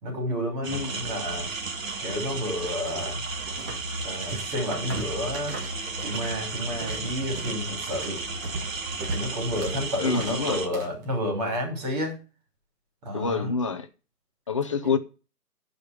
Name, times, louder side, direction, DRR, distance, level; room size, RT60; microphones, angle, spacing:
voice 1, 0.0-1.5 2.0-3.2 4.0-5.6 6.0-8.2 9.1-12.2 13.0-13.5, left 1 dB, 25° right, 5.6 m, -30 dB
sound 1, 0.6-10.7, right 3 dB, 55° right, 2.1 m, -34 dB
sound 2, 2.9-3.9 4.1-6.4 6.6-11.0, right 2 dB, 10° right, 0.9 m, -38 dB
voice 2, 10.0-10.6 13.1-13.9 14.5-15.0, left 5 dB, 20° left, 0.6 m, -27 dB
11.0 x 5.2 x 8.1 m
figure-of-eight pair, 145°, 47 cm